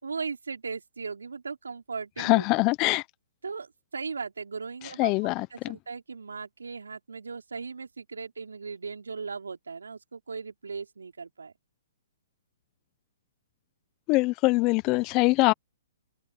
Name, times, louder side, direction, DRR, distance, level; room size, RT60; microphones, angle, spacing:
voice 1, 0.0-2.4 3.4-5.1 5.5-11.5, right 5 dB, 90° right, 4.8 m, -37 dB
voice 2, 2.2-3.0 5.0-5.8 14.1-15.5, left 23 dB, 30° left, 0.9 m, -23 dB
open air
hypercardioid pair, 135°, 0 cm